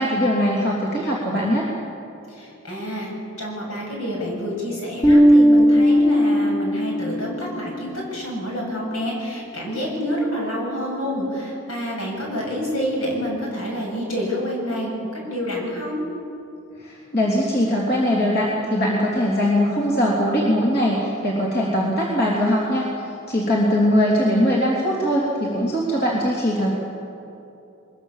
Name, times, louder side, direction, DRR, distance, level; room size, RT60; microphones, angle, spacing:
voice 1, 0.0-1.7 16.8-22.9 23.3-26.7, equal, 45° left, -4 dB, 3.2 m, -21 dB
voice 2, 2.3-16.0, equal, 70° left, -2 dB, 7.7 m, -28 dB
Bass guitar, 5.0-7.5, equal, 30° left, 2.4 m, -16 dB
23.0 x 21.5 x 7.4 m, 2.8 s
head